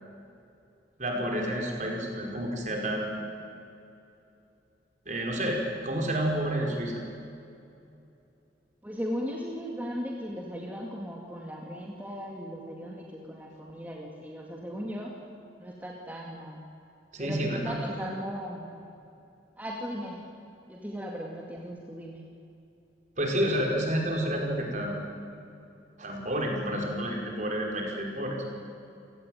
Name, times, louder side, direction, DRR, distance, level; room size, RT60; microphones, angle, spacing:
voice 1, 1.0-3.2 5.1-7.0 17.1-18.1 23.2-24.9 26.0-28.4, right 1 dB, 40° right, 0 dB, 5.2 m, -30 dB
voice 2, 8.8-15.1 15.6-16.6 17.2-18.7 19.6-20.2 20.7-22.2, equal, 10° right, -1 dB, 2.3 m, -37 dB
29.0 x 18.0 x 9.3 m, 2.7 s
head